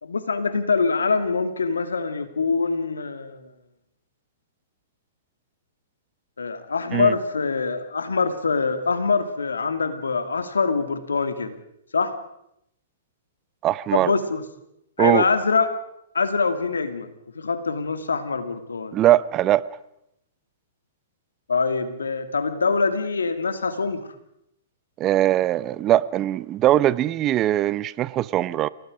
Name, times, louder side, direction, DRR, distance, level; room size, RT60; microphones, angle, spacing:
voice 1, 0.0-3.5 6.4-11.6 11.9-12.1 13.9-14.4 15.0-15.7 16.1-17.1 17.4-19.0 21.5-24.1, left 4 dB, 85° left, 9 dB, 2.4 m, -24 dB
voice 2, 13.6-14.1 15.0-15.2 18.9-19.6 25.0-28.7, right 13 dB, 30° right, 18 dB, 0.8 m, -21 dB
29.0 x 18.0 x 5.1 m, 0.79 s
hypercardioid pair, 120°, 0 cm